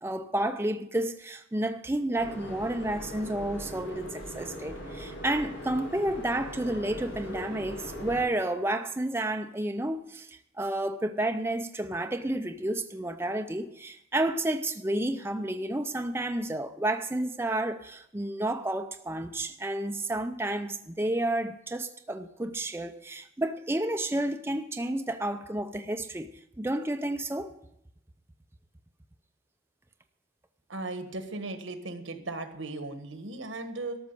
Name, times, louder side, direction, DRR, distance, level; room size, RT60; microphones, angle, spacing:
voice 1, 0.0-27.5, right 1 dB, 10° right, 0.5 m, -31 dB
sound 1, 2.2-8.2, equal, 90° left, 4.9 m, -40 dB
voice 2, 30.7-34.0, right 2 dB, 90° right, 1.6 m, -37 dB
13.0 x 6.3 x 9.7 m
head